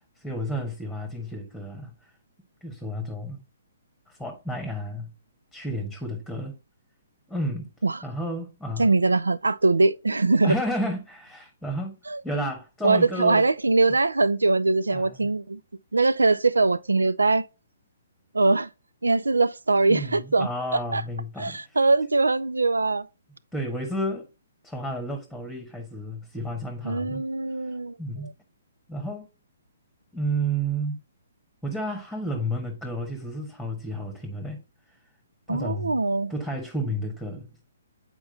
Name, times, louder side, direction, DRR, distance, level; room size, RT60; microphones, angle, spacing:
voice 1, 0.0-1.9 2.6-3.4 4.1-5.1 5.5-6.6 7.3-7.7 8.0-8.9 10.4-11.9 12.2-13.5 13.8-13.9 14.9-15.3 19.8-21.8 23.5-24.3 24.6-27.2 28.0-28.3 28.9-29.3 30.1-31.0 31.6-34.6 34.9-35.0 35.5-36.0 36.3-37.5, equal, ahead, 1.2 m, -31 dB
voice 2, 8.8-10.5 12.1-12.2 12.8-15.6 15.9-17.5 18.3-18.7 19.0-20.5 20.9-21.0 21.4-23.1 26.8-27.9 35.5-36.3, right 3 dB, 80° right, 0.4 m, -22 dB
8.7 x 4.5 x 2.6 m
figure-of-eight pair, 125°, 0 cm